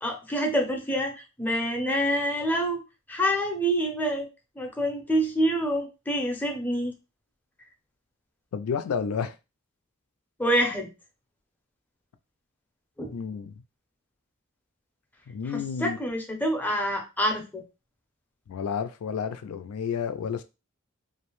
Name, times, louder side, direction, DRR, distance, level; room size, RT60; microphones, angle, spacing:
voice 1, 0.0-2.8 3.1-4.3 4.6-6.9 10.4-10.9 13.0-13.1 15.5-17.6, equal, 10° left, 0.5 m, -27 dB
voice 2, 8.5-9.3 13.1-13.5 15.3-16.0 18.5-20.4, left 6 dB, 85° left, 0.4 m, -31 dB
2.5 x 2.0 x 2.9 m
head